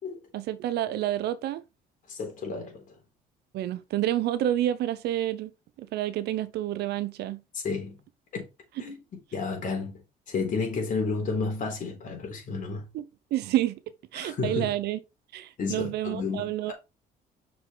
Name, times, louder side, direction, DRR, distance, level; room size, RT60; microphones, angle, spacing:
voice 1, 0.3-1.6 3.5-5.5 5.8-7.4 12.9-13.8 14.1-15.0 15.3-16.7, right 13 dB, 75° right, 0.8 m, -29 dB
voice 2, 2.1-2.8 7.5-8.0 8.3-8.5 8.8-9.0 9.3-12.9 14.2-14.7 15.6-16.7, left 4 dB, 50° left, 3.9 m, -31 dB
6.1 x 5.2 x 3.9 m
cardioid pair, 110°, 17 cm